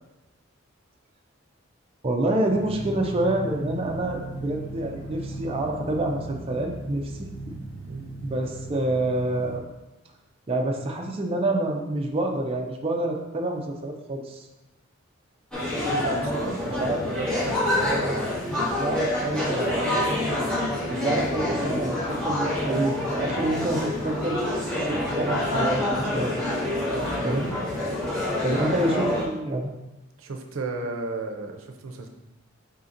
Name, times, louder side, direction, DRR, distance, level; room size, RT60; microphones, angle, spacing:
voice 1, 2.0-7.3 8.2-9.6 10.5-14.5 16.8-17.0 17.8-20.1 20.9-24.4 24.9-26.3 27.2-27.5 28.4-29.7, right 1 dB, 30° right, 1 dB, 0.4 m, -27 dB
sound 1, 2.5-9.6, right 1 dB, 55° right, 1.1 m, -37 dB
sound 2, 15.5-29.2, left 1 dB, 5° left, 1.0 m, -27 dB
voice 2, 15.8-17.9 26.8-27.3 28.4-28.8 30.2-32.1, right 3 dB, 80° right, 4 dB, 0.5 m, -34 dB
5.0 x 2.8 x 3.7 m, 1.0 s
head